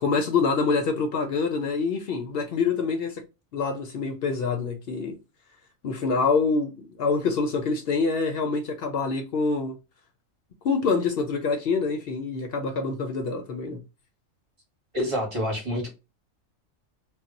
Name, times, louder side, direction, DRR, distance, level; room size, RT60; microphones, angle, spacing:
voice 1, 0.0-3.2 3.5-5.2 5.8-9.8 10.6-13.8, left 4 dB, 65° left, 0.6 m, -26 dB
voice 2, 14.9-15.9, equal, 25° right, 0.9 m, -27 dB
2.3 x 2.1 x 3.8 m
omnidirectional pair, 1.4 m